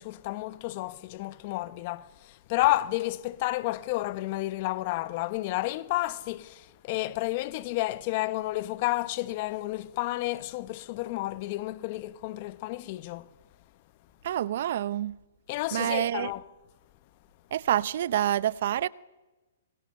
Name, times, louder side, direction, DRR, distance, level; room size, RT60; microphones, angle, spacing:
voice 1, 0.0-13.3 15.5-16.4, left 18 dB, 40° left, 1.2 m, -31 dB
voice 2, 14.2-15.2 15.7-16.3 17.5-18.9, right 11 dB, 60° right, 0.8 m, -27 dB
25.5 x 22.5 x 6.8 m
hypercardioid pair, 140°, 0 cm